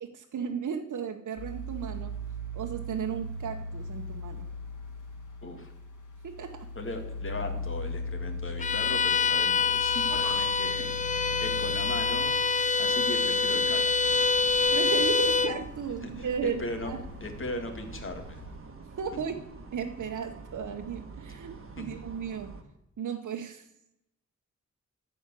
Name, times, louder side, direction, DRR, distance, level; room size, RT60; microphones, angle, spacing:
voice 1, 0.0-2.1 2.5-4.5 6.2-6.7 10.1-10.5 14.7-17.0 19.0-19.5 19.7-22.6 23.0-23.7, right 7 dB, 75° right, 3 dB, 0.9 m, -35 dB
sound 1, 1.4-18.6, left 2 dB, 80° left, 2.6 m, -39 dB
voice 2, 5.4-5.7 6.8-14.2 16.0-16.9 17.2-18.4 21.8-21.9, left 1 dB, 40° left, 5 dB, 2.1 m, -38 dB
Bowed string instrument, 8.6-15.6, left 4 dB, 25° left, 0.4 m, -26 dB
sound 2, 14.0-22.6, right 3 dB, 45° right, 1.5 m, -46 dB
13.0 x 5.0 x 8.2 m, 0.84 s
wide cardioid pair, 95°, 30 cm